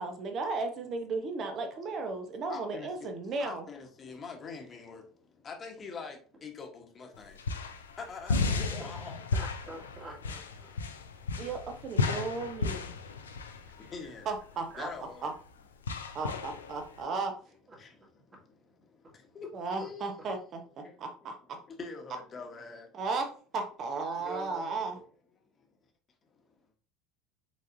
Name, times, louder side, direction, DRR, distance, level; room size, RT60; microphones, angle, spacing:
voice 1, 0.0-3.6 11.4-12.8 14.2-14.9 15.2-15.3 16.1-17.3 19.5-21.6 22.9-25.0, right 3 dB, 45° right, 0.9 m, -35 dB
voice 2, 2.5-3.1 3.4-5.0 5.4-7.4 8.0-9.2 13.9-14.3 14.8-15.3 17.8-17.9 19.3-19.5 19.8-20.2 20.8-20.9 21.8-22.9, left 5 dB, 35° left, 1.1 m, -43 dB
sound 1, 7.1-17.0, left 4 dB, 85° left, 0.4 m, -34 dB
voice 3, 9.3-10.8 17.7-17.8 24.2-24.8, right 2 dB, 25° right, 1.9 m, -45 dB
5.1 x 4.0 x 2.6 m
hypercardioid pair, 70°, 0 cm